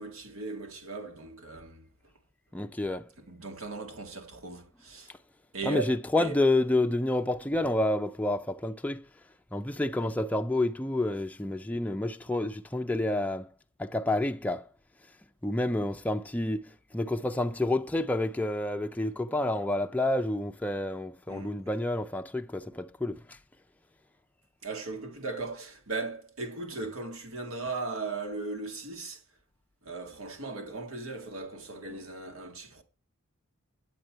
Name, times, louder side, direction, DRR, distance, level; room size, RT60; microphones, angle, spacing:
voice 1, 0.0-1.8 3.3-5.1 5.5-5.9 6.2-6.3 21.3-21.6 24.6-29.2 29.8-32.8, right 3 dB, 80° right, 1.9 m, -37 dB
voice 2, 2.5-3.1 5.6-9.0 9.5-13.5 13.8-14.7 15.4-16.7 16.9-23.4, left 1 dB, 5° left, 0.4 m, -29 dB
8.9 x 7.7 x 4.4 m
head